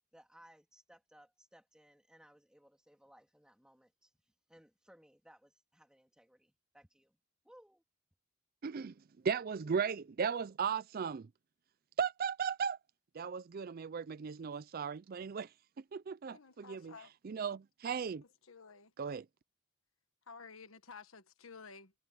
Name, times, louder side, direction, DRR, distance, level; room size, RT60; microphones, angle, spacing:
voice 1, 0.1-4.1 4.5-7.2 7.4-7.8, equal, 5° right, 3.3 m, -62 dB
voice 2, 8.6-8.9 9.2-11.3 12.0-12.8 13.1-15.5 15.9-16.9 17.2-18.2 19.0-19.2, right 6 dB, 45° right, 0.4 m, -36 dB
voice 3, 16.3-17.1 18.4-18.9 20.3-21.9, left 5 dB, 75° left, 1.4 m, -53 dB
head